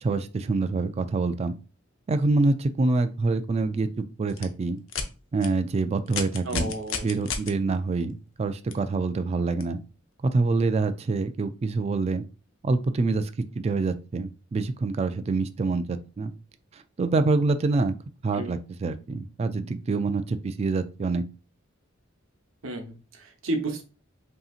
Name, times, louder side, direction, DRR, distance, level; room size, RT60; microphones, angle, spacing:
voice 1, 0.0-1.5 2.1-4.8 5.3-6.7 7.0-9.8 10.2-12.2 12.6-13.3 13.6-16.3 16.7-18.0 18.2-21.2, right 3 dB, 30° right, 10 dB, 0.3 m, -26 dB
sound 1, 4.3-4.4 4.9-5.1 5.4-5.5 6.1-7.5 8.7-8.8 9.6-9.7, left 5 dB, 75° left, 0.6 m, -31 dB
voice 2, 6.4-7.1 18.3-18.5 22.6-23.8, right 2 dB, 85° right, 4 dB, 0.9 m, -32 dB
5.3 x 2.8 x 2.4 m, 0.34 s
head